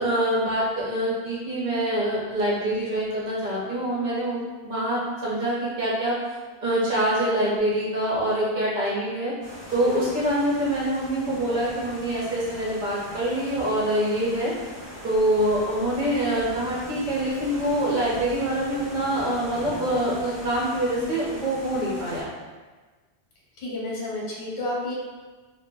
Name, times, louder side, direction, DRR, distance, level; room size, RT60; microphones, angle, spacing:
voice 1, 0.0-6.1 6.6-9.3 9.7-14.5 15.0-22.3, right 1 dB, 50° right, -7 dB, 0.8 m, -25 dB
sound 1, 9.4-22.2, equal, 20° right, 0.9 m, -41 dB
voice 2, 23.6-24.9, left 1 dB, 55° left, -5 dB, 0.9 m, -30 dB
2.1 x 2.0 x 3.3 m, 1.3 s
omnidirectional pair, 1.1 m